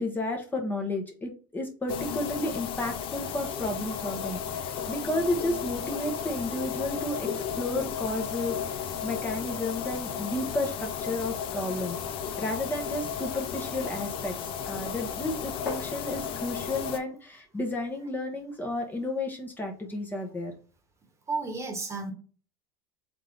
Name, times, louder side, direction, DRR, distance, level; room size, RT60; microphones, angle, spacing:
voice 1, 0.0-7.3 7.6-12.0 12.4-20.5, left 1 dB, 15° left, 1 dB, 1.0 m, -32 dB
sound 1, 1.9-17.0, left 8 dB, 50° left, 0.7 m, -34 dB
sound 2, 4.5-16.4, left 4 dB, 75° left, 1.0 m, -49 dB
voice 2, 21.3-22.1, right 4 dB, 25° right, 4 dB, 1.2 m, -32 dB
3.7 x 3.6 x 3.3 m, 0.40 s
hypercardioid pair, 90°, 12 cm